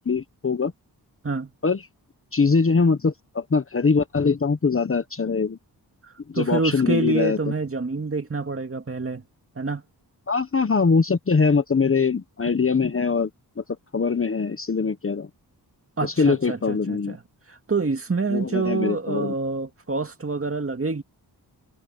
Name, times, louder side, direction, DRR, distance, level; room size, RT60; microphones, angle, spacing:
voice 1, 0.1-0.7 1.6-1.8 2.3-5.6 6.3-7.4 10.3-13.3 13.6-13.7 13.9-15.3 16.0-17.2 18.3-19.3, left 4 dB, 35° left, 0.9 m, -22 dB
voice 2, 6.0-9.2 9.6-9.8 16.0-17.2 17.5-21.0, right 3 dB, 35° right, 2.2 m, -27 dB
wide cardioid pair, 110°, 40 cm